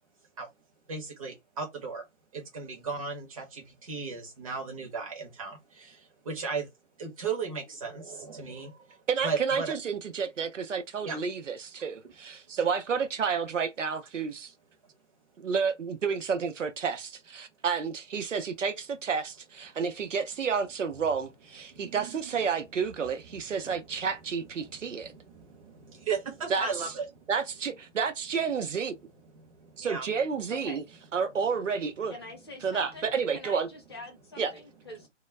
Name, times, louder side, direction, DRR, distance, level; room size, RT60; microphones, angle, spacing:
voice 1, 0.9-2.0 2.3-6.7 7.0-9.7 11.0-11.2 12.0-12.1 19.7-19.8 21.7-22.2 23.3-24.1 24.5-27.3 29.3-30.1, right 5 dB, 30° right, 0.7 m, -36 dB
voice 2, 9.1-14.5 15.4-25.1 26.5-26.7 27.3-29.0 29.8-30.8 31.1-32.1 32.6-33.7 34.4-34.5, right 6 dB, 90° right, 0.7 m, -30 dB
voice 3, 32.1-35.1, left 2 dB, 20° left, 0.5 m, -45 dB
2.2 x 2.0 x 3.1 m
hypercardioid pair, 150°, 36 cm